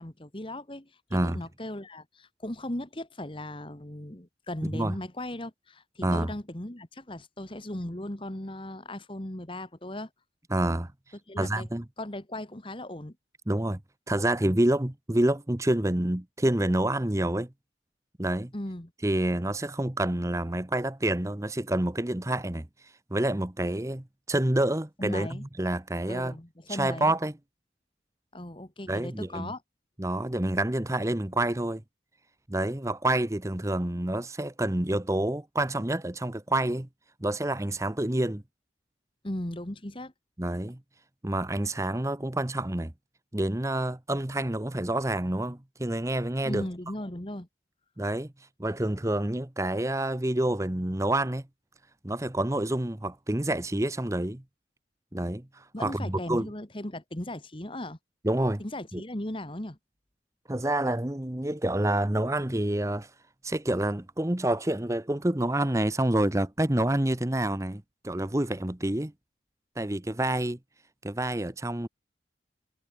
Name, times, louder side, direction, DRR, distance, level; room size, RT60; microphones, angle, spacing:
voice 1, 0.0-10.1 11.3-11.7 12.0-13.1 18.5-18.9 25.0-25.4 26.1-27.1 28.3-29.6 39.2-40.1 46.4-47.5 55.7-58.0 58.6-59.8, left 1 dB, 30° left, 1.7 m, -37 dB
voice 2, 1.1-1.4 4.7-4.9 6.0-6.3 10.5-10.9 11.4-11.8 13.5-13.8 14.1-17.5 18.2-18.5 19.0-26.4 26.7-27.3 28.9-29.5 30.0-31.8 32.5-36.9 37.2-38.4 40.4-40.8 41.2-42.9 43.3-46.7 48.0-48.3 48.6-51.4 52.0-54.4 55.1-56.5 58.2-58.6 58.9-59.0 60.5-63.1 63.4-69.1 69.8-70.6 71.0-71.9, right 1 dB, 15° right, 0.9 m, -28 dB
head